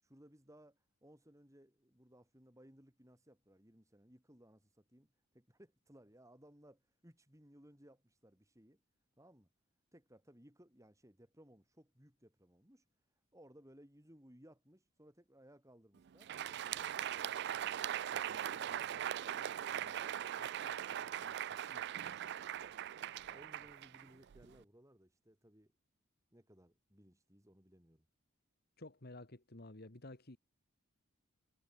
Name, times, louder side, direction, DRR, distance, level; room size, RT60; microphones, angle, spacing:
voice 1, 0.0-8.8 9.2-9.5 9.9-12.9 13.3-16.9 18.1-19.0 19.4-22.7 23.2-25.7 26.3-28.1, equal, 15° right, 4.8 m, -63 dB
Crowd, 16.1-24.6, right 10 dB, 50° right, 0.3 m, -40 dB
voice 2, 28.8-30.4, left 2 dB, 45° left, 1.8 m, -52 dB
head